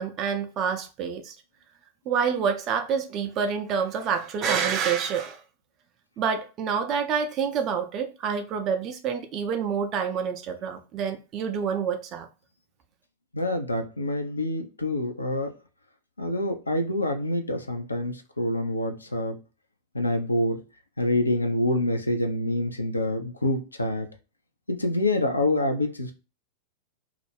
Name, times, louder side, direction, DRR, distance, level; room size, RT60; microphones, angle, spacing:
voice 1, 0.0-1.4 2.1-5.4 6.2-12.3, right 6 dB, 35° right, 0.3 m, -27 dB
voice 2, 13.3-15.5 16.2-19.4 19.9-20.6 21.0-24.1 24.7-26.1, left 1 dB, 80° left, 0.4 m, -26 dB
2.3 x 2.0 x 3.2 m
figure-of-eight pair, 90°, 0 cm